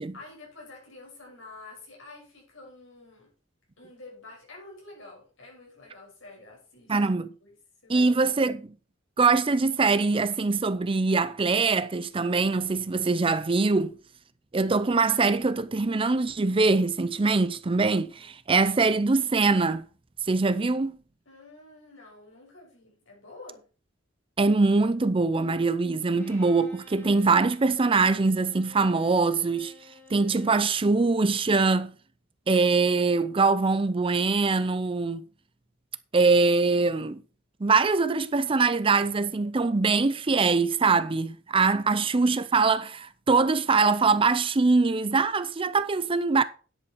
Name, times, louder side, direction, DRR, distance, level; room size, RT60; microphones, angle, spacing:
voice 1, 0.1-3.3 3.8-7.0 7.4-7.6 7.8-8.4 18.1-18.3 21.3-23.6 30.9-31.4 41.7-42.1, left 2 dB, 70° left, 6.1 m, -49 dB
voice 2, 6.9-7.3 7.9-8.6 9.2-13.9 14.5-19.8 20.3-20.9 24.4-29.7 30.1-31.9 32.5-35.2 36.1-37.2 37.6-46.4, right 4 dB, 25° right, 0.5 m, -23 dB
Bowed string instrument, 26.2-30.7, left 2 dB, 10° left, 3.7 m, -52 dB
10.0 x 8.0 x 4.6 m
head